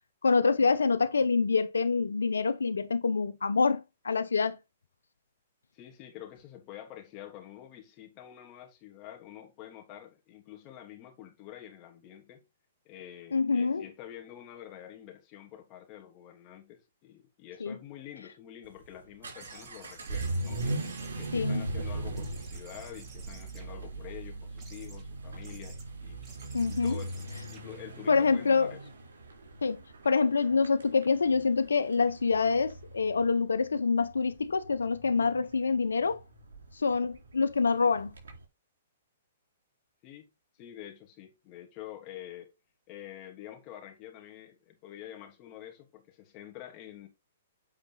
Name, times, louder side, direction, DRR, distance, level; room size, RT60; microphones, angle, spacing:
voice 1, 0.2-4.6 13.3-13.9 17.6-17.8 21.3-21.7 26.5-27.0 28.1-28.7 29.6-36.2 36.7-38.1, left 4 dB, 90° left, 0.8 m, -26 dB
voice 2, 5.7-12.4 12.8-20.8 21.2-26.2 26.7-27.2 27.5-28.8 40.0-40.3 40.5-42.5 42.9-47.1, left 11 dB, 35° left, 3.1 m, -47 dB
Vehicle / Accelerating revving vroom, 18.6-38.4, right 2 dB, 80° right, 3.7 m, -39 dB
sound 1, 19.4-21.8 22.2-24.1 24.6-25.0 25.4-25.8 26.2-28.7, right 4 dB, 25° right, 3.8 m, -54 dB
8.7 x 4.9 x 4.1 m
hypercardioid pair, 130°, 0 cm